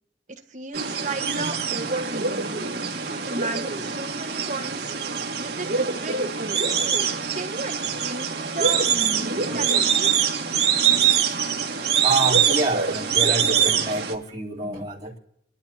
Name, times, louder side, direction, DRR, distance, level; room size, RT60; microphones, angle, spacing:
voice 1, 0.3-2.7 3.1-4.9 5.4-6.8 7.3-10.2, right 2 dB, 45° right, 3 dB, 1.5 m, -34 dB
sound 1, 0.7-14.1, right 7 dB, 65° right, 2.0 m, -24 dB
voice 2, 11.7-15.2, right 2 dB, 20° right, -9 dB, 3.2 m, -27 dB
23.0 x 12.0 x 2.9 m, 0.72 s
head